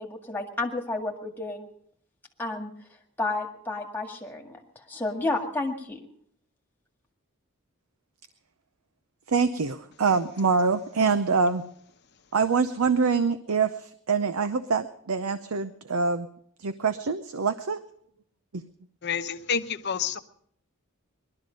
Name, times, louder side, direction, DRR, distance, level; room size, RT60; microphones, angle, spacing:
voice 1, 0.0-1.7 2.4-2.7 3.2-4.6 4.9-6.0, left 2 dB, 10° left, 1 dB, 1.9 m, -31 dB
voice 2, 9.3-11.6 12.3-16.3 16.6-17.8, right 5 dB, 90° right, 11 dB, 0.7 m, -25 dB
voice 3, 19.0-20.2, left 7 dB, 50° left, 8 dB, 0.8 m, -29 dB
20.0 x 12.5 x 5.3 m, 0.65 s
head